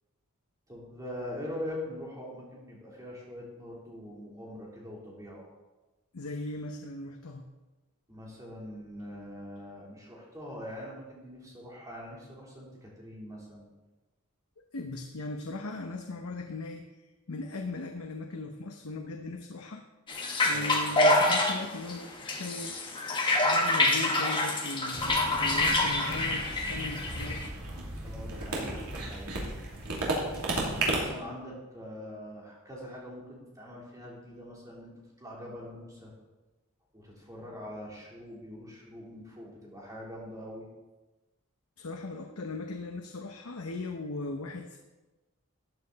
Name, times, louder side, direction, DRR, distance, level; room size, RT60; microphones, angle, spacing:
voice 1, 0.7-5.5 8.1-13.7 20.4-20.7 28.0-29.4 30.5-34.9 35.2-36.1 36.9-40.7, left 1 dB, 15° right, -4 dB, 3.5 m, -43 dB
voice 2, 6.1-7.4 14.7-16.9 17.3-19.8 20.4-22.9 23.4-25.1 25.3-27.5 41.8-44.8, left 2 dB, 75° left, 4 dB, 0.9 m, -38 dB
sound 1, 20.1-27.5, left 2 dB, 20° left, 1.4 m, -27 dB
sound 2, 24.9-31.0, right 2 dB, 90° right, 2.9 m, -34 dB
13.5 x 8.9 x 4.1 m, 1.1 s
head